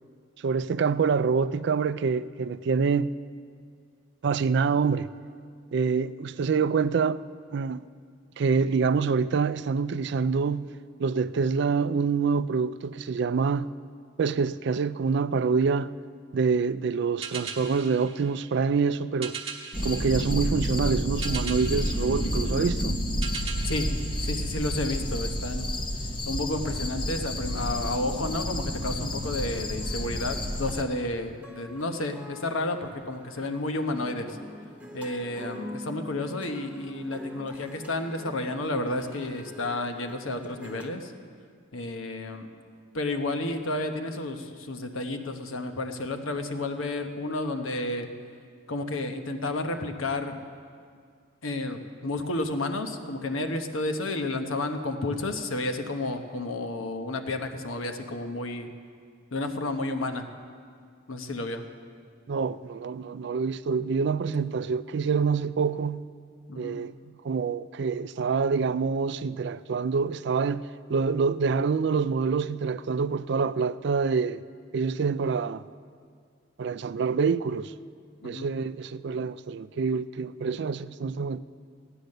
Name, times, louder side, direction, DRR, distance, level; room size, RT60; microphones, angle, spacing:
voice 1, 0.4-3.2 4.2-5.1 5.7-7.2 7.5-7.9 8.4-10.7 11.0-13.7 14.2-15.9 16.3-19.4 19.8-23.0 62.3-66.1 66.6-66.9 67.2-74.4 74.7-75.6 76.6-77.7 78.2-81.4, right 5 dB, 55° right, 0.3 m, -26 dB
sound 1, 17.2-25.1, right 6 dB, 30° right, 1.2 m, -41 dB
sound 2, 19.7-30.8, equal, 25° left, 0.7 m, -30 dB
voice 2, 24.2-25.8 26.3-34.4 34.9-41.1 41.7-42.5 42.9-48.1 48.7-50.4 51.4-58.7 59.3-60.3 61.1-61.6 66.5-66.8 78.2-78.5, left 2 dB, 85° left, 1.0 m, -31 dB
sound 3, 29.8-40.9, left 1 dB, 5° right, 1.3 m, -44 dB
16.5 x 9.1 x 6.6 m
head